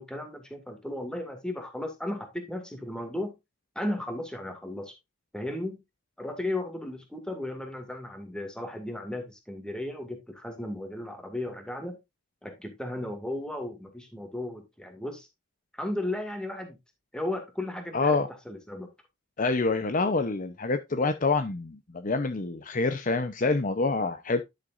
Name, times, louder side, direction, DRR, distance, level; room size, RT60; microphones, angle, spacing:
voice 1, 0.0-3.3 3.8-4.9 5.3-5.8 6.2-12.0 12.4-15.3 15.7-16.8 17.1-18.2 18.5-18.9, left 1 dB, 5° left, 2.1 m, -35 dB
voice 2, 17.9-18.3 19.4-24.4, left 3 dB, 40° left, 0.7 m, -26 dB
11.0 x 6.7 x 2.5 m
head